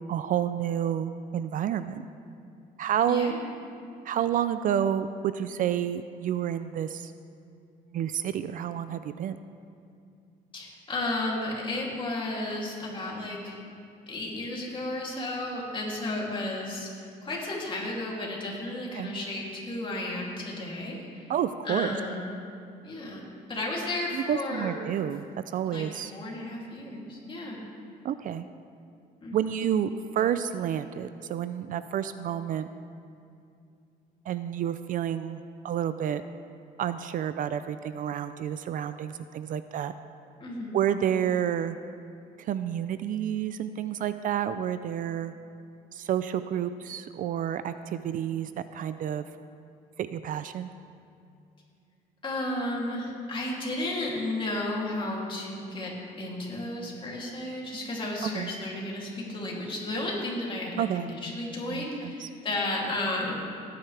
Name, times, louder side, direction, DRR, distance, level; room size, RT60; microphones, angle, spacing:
voice 1, 0.1-2.1 2.8-3.3 4.0-7.1 7.9-9.4 19.0-19.1 21.3-21.9 24.1-26.1 28.0-28.5 29.3-32.7 34.3-36.2 36.8-39.9 40.7-41.8 42.4-45.3 45.9-49.2 50.0-50.7 58.3-58.5 60.8-61.1 61.7-62.3, right 9 dB, 55° right, 12 dB, 0.4 m, -29 dB
voice 2, 3.1-3.5 10.5-13.6 14.1-21.3 21.6-22.4 22.8-24.9 25.7-27.6 29.2-29.7 40.4-40.8 52.2-63.4, left 1 dB, 30° left, -4 dB, 2.9 m, -33 dB
17.5 x 9.3 x 3.4 m, 2.5 s
cardioid pair, 110°, 17 cm